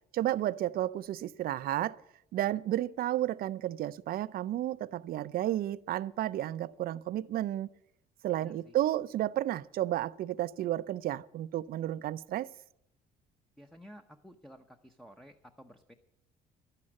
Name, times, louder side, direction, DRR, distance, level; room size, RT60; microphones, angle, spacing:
voice 1, 0.1-2.0 2.3-7.7 8.2-12.5, right 13 dB, 60° right, 0.5 m, -32 dB
voice 2, 8.4-8.7 13.6-15.9, equal, ahead, 0.8 m, -53 dB
11.5 x 9.7 x 8.8 m
cardioid pair, 110°, 17 cm